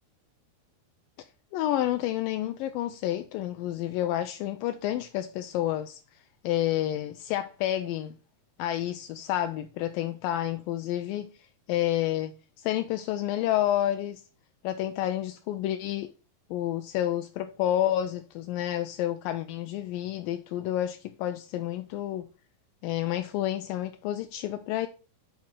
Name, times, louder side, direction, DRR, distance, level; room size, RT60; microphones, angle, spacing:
voice 1, 1.5-6.0 6.4-8.2 8.6-11.3 11.7-12.3 12.6-14.2 14.6-16.1 16.5-22.3 22.8-24.9, left 12 dB, 85° left, 2.0 m, -29 dB
8.8 x 4.3 x 3.7 m
omnidirectional pair, 4.4 m